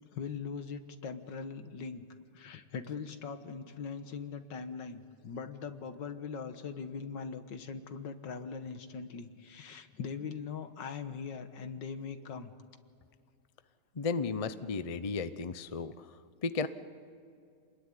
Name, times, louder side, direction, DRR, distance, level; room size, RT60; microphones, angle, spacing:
voice 1, 0.0-2.0 2.3-12.5, left 5 dB, 80° left, 9 dB, 2.0 m, -41 dB
voice 2, 14.0-15.9 16.4-16.7, left 4 dB, 40° left, 12 dB, 0.4 m, -33 dB
28.5 x 20.5 x 9.8 m, 2.4 s
omnidirectional pair, 1.9 m